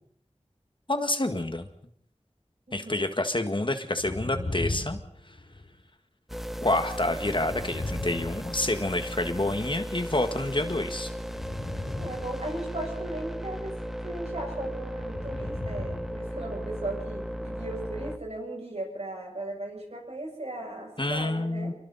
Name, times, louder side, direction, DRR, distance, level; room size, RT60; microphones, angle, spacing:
voice 1, 0.9-1.7 2.7-5.0 5.3-5.4 6.6-11.1 21.0-21.7, left 2 dB, 45° left, 7 dB, 1.8 m, -28 dB
voice 2, 2.7-3.1 11.9-13.8 14.0-21.7, right 2 dB, 65° right, -1 dB, 7.7 m, -37 dB
sound 1, 3.9-5.8 7.3-9.2 11.3-13.0 15.0-16.3 16.5-16.6, left 2 dB, 70° left, 3.2 m, -36 dB
sound 2, 6.3-18.2, equal, ahead, 1.2 m, -36 dB
28.0 x 23.0 x 4.2 m, 0.66 s
wide cardioid pair, 55°, 12 cm